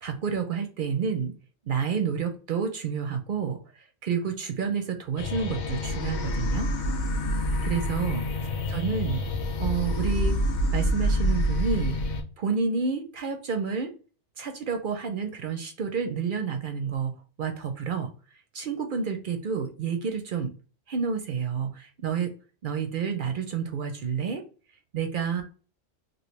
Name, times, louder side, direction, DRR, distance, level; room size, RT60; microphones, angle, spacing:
voice 1, 0.0-1.3 1.7-3.6 4.0-6.7 7.6-8.2 8.7-9.2 9.6-10.4 10.7-12.0 12.4-13.9 14.4-17.1 17.4-18.1 18.5-20.5 20.9-22.3 22.6-24.4 24.9-25.4, right 6 dB, 55° right, 5 dB, 0.6 m, -29 dB
sound 1, 5.2-12.2, left 1 dB, 55° left, 0.5 m, -27 dB
3.0 x 2.6 x 3.0 m, 0.37 s
omnidirectional pair, 1.2 m